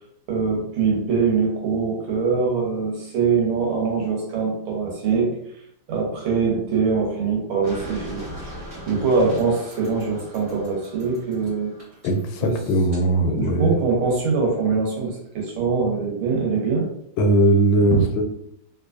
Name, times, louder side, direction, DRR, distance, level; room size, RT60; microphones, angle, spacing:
voice 1, 0.3-5.3 5.9-11.7 12.4-12.6 13.3-16.9, right 5 dB, 85° right, -1 dB, 1.9 m, -23 dB
sound 1, 7.6-13.0, equal, 20° right, 1.1 m, -40 dB
voice 2, 12.0-13.7 17.2-18.2, right 1 dB, 85° left, 4 dB, 1.4 m, -19 dB
3.7 x 2.9 x 2.5 m, 0.74 s
omnidirectional pair, 2.2 m